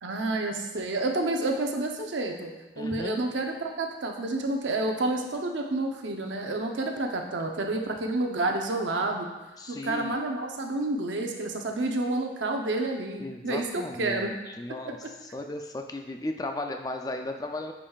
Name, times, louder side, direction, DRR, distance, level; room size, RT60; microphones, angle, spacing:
voice 1, 0.0-9.3 9.7-14.3 14.7-14.8, right 2 dB, 85° right, 2 dB, 0.7 m, -29 dB
voice 2, 2.8-3.3 9.6-10.2 13.2-15.0 15.2-17.7, left 2 dB, 20° left, 4 dB, 0.4 m, -35 dB
8.6 x 5.1 x 2.4 m, 1.1 s
head